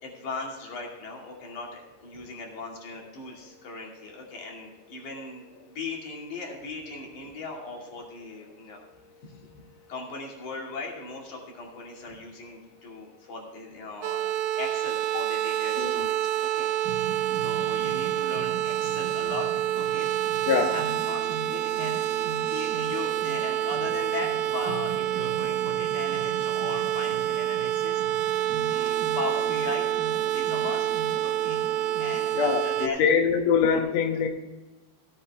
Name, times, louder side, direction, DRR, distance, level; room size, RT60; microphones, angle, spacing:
voice 1, 0.0-5.4 5.7-8.8 9.2-9.6 9.9-16.7 17.0-19.5 19.7-20.1 20.5-22.0 22.4-29.9 30.3-30.9 31.2-31.6 32.0-33.2 33.7-33.9, left 3 dB, 50° left, -1 dB, 3.5 m, -38 dB
sound 1, 14.0-32.9, right 12 dB, 80° right, 2.5 m, -27 dB
voice 2, 15.7-16.1 20.4-20.7 32.3-34.3, left 6 dB, 85° left, 4 dB, 1.5 m, -24 dB
sound 2, 16.8-32.4, right 5 dB, 35° right, 4.1 m, -40 dB
16.0 x 8.5 x 3.5 m, 1.1 s
omnidirectional pair, 4.9 m